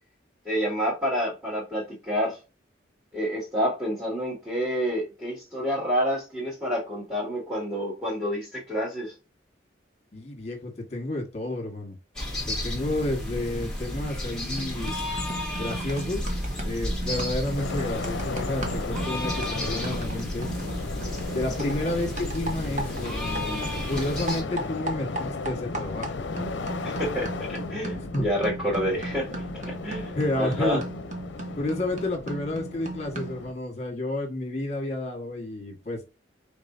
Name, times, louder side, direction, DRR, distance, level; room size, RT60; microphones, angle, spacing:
voice 1, 0.4-2.4 3.1-9.2 21.6-21.7 26.8-30.8, equal, 10° right, 2.1 m, -29 dB
voice 2, 10.1-12.0 12.4-15.0 15.6-16.3 16.6-20.5 21.3-26.5 28.1-28.3 30.2-30.8 31.5-36.0, left 1 dB, 35° left, 1.6 m, -31 dB
sound 1, 12.1-24.4, left 1 dB, 5° left, 1.5 m, -32 dB
sound 2, 14.1-14.3 14.6-23.7 24.0-33.5, right 2 dB, 40° right, 1.1 m, -37 dB
sound 3, 17.6-33.5, left 3 dB, 75° left, 0.6 m, -35 dB
5.3 x 3.7 x 2.7 m
head